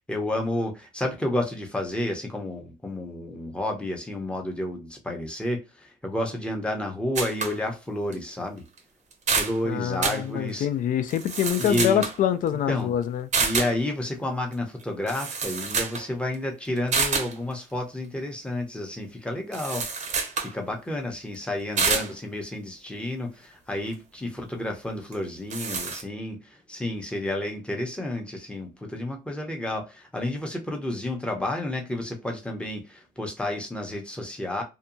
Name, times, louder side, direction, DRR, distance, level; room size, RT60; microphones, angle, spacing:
voice 1, 0.1-8.6 9.3-10.7 11.6-12.1 12.7-12.9 13.4-20.1 20.4-34.6, left 1 dB, 5° left, 0.7 m, -31 dB
sound 1, 7.1-7.6 8.1-8.2 8.8-8.9 9.1-9.6 10.0-10.2 11.1-12.2 13.3-13.8 14.8-14.9 15.1-16.1 16.3-16.4 16.9-17.3 19.5-20.5 21.8-22.1 25.1-25.2 25.5-26.0, right 5 dB, 45° right, 0.7 m, -27 dB
voice 2, 9.7-13.3, left 10 dB, 55° left, 0.4 m, -25 dB
2.7 x 2.2 x 2.5 m
cardioid pair, 110°, 17 cm